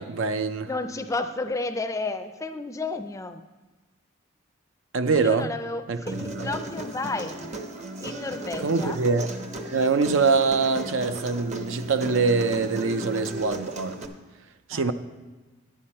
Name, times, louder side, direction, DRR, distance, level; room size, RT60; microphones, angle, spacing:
voice 1, 0.0-0.7 4.9-5.5 5.9-6.5 8.6-9.3 9.7-14.0 14.7-14.9, right 4 dB, 75° right, 0.5 m, -24 dB
voice 2, 0.7-3.4 5.2-7.5 8.0-9.0 14.7-14.9, left 3 dB, 15° left, 0.4 m, -32 dB
Human voice, 6.1-14.1, right 1 dB, 35° right, 0.7 m, -36 dB
11.0 x 9.3 x 4.3 m
head